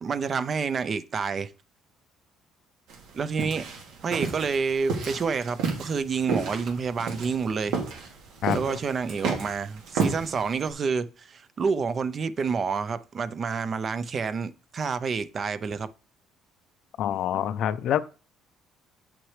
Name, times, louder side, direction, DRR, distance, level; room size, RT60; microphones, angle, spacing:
voice 1, 0.0-1.5 3.1-3.7 4.0-7.8 8.5-15.9, right 5 dB, 35° right, 0.5 m, -28 dB
sound 1, 2.9-10.7, right 5 dB, 80° right, 2.1 m, -32 dB
voice 2, 8.4-8.8 17.0-18.0, left 10 dB, 60° left, 0.4 m, -26 dB
8.6 x 6.0 x 3.2 m
cardioid pair, 140°, 0 cm